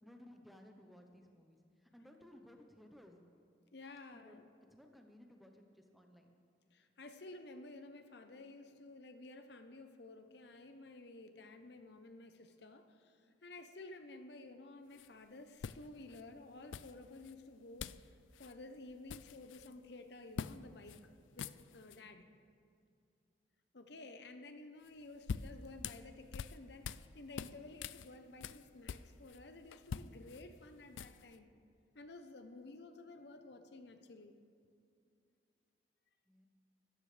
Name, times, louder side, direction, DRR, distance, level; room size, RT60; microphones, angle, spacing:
voice 1, 0.0-3.2 4.2-4.4 4.7-6.3 36.3-36.5, left 1 dB, ahead, 3 dB, 0.9 m, -59 dB
voice 2, 3.7-4.5 6.7-17.9 18.4-21.1 21.3-22.2 23.7-31.5 31.9-34.3, left 2 dB, 65° left, 7 dB, 0.8 m, -53 dB
sound 1, 14.9-15.1 15.6-16.2 16.7-17.3 17.8-18.1 18.3-18.5 18.9-19.7 20.4-20.6 20.9-21.0 21.3-22.0 24.9-27.1 27.4-29.4 29.7-31.4, left 6 dB, 90° left, 0.4 m, -45 dB
24.5 x 13.5 x 3.4 m, 2.4 s
head